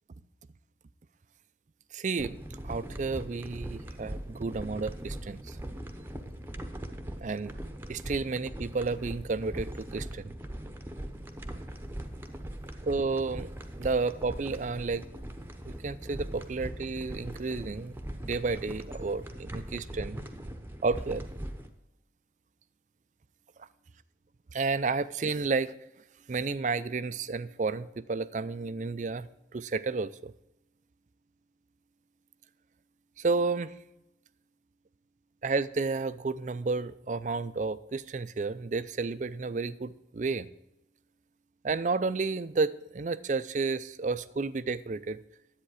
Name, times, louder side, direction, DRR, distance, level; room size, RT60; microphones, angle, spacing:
voice 1, 1.9-2.4 2.6-5.6 7.2-7.5 7.9-10.3 12.9-13.5 13.8-15.0 15.7-17.9 18.2-20.2 20.8-21.2 23.6-23.7 24.5-25.7 26.3-30.3 33.2-33.8 35.4-40.5 41.6-45.2, right 4 dB, 45° right, 15 dB, 0.4 m, -31 dB
sound 1, 2.2-21.7, right 1 dB, 10° right, 0.8 m, -40 dB
10.5 x 8.4 x 4.8 m, 0.91 s
head